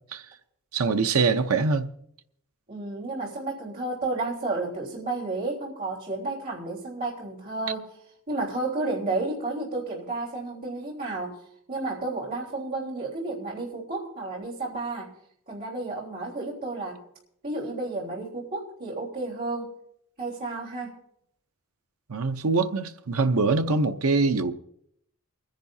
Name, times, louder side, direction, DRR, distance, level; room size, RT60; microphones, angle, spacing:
voice 1, 0.7-1.9 22.1-24.5, right 4 dB, 70° right, 0.7 m, -23 dB
voice 2, 2.7-7.9 8.3-11.4 11.7-15.1 15.5-17.0 17.4-19.7 20.2-20.9, right 2 dB, 40° right, 3.6 m, -32 dB
29.0 x 10.5 x 2.7 m
head